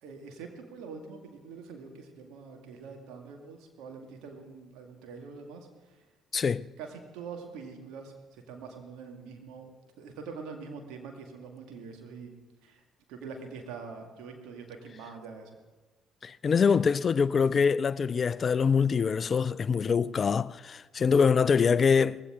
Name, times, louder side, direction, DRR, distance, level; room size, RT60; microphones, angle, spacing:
voice 1, 0.0-6.0 6.8-9.7 10.0-12.3 12.6-12.8 13.1-15.5, right 5 dB, 70° right, 2.1 m, -44 dB
voice 2, 6.3-6.6 16.2-22.2, left 6 dB, 45° left, 0.4 m, -24 dB
19.5 x 16.0 x 3.8 m
hypercardioid pair, 45°, 0 cm